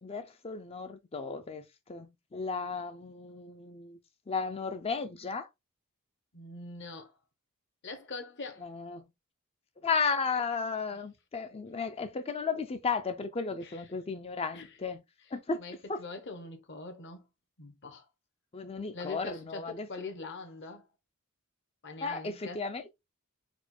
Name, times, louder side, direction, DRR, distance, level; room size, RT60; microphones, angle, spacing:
voice 1, 0.0-1.6 1.9-4.0 4.3-5.5 8.6-9.0 9.8-15.0 15.3-15.6 15.9-16.0 18.5-19.9 22.0-22.9, left 4 dB, 25° left, 0.4 m, -34 dB
voice 2, 6.3-7.1 7.8-8.7 10.9-11.0 13.6-13.8 14.5-14.8 15.5-17.3 17.6-18.1 18.9-20.9 21.8-22.6, left 3 dB, 55° left, 1.0 m, -43 dB
4.3 x 2.3 x 4.3 m
head